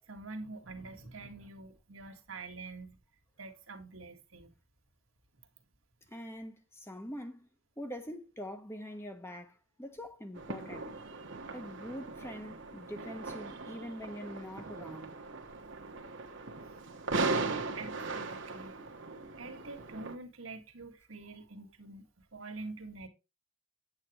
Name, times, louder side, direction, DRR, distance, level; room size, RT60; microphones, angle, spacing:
voice 1, 0.1-3.0 3.4-4.6 17.3-18.8 19.4-23.1, right 3 dB, 80° right, 1.9 m, -46 dB
voice 2, 6.1-7.5 7.8-10.9 11.5-15.2 16.1-16.2, equal, 10° left, 1.0 m, -44 dB
sound 1, 10.4-20.2, right 3 dB, 60° right, 1.3 m, -38 dB
8.4 x 8.3 x 3.0 m
head